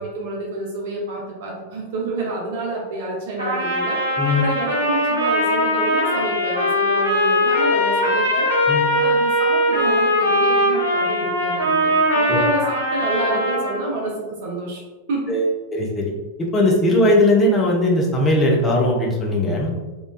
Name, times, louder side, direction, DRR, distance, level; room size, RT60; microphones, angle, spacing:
voice 1, 0.0-4.0 4.4-8.5 8.9-14.8 15.1-15.4, right 2 dB, 55° right, -2 dB, 0.5 m, -28 dB
Trumpet, 3.4-13.8, equal, 80° right, 0.9 m, -20 dB
voice 2, 15.3-16.1 16.4-19.7, left 1 dB, 20° left, -1 dB, 0.6 m, -19 dB
2.9 x 2.2 x 2.2 m, 1.2 s
figure-of-eight pair, 90°, 0 cm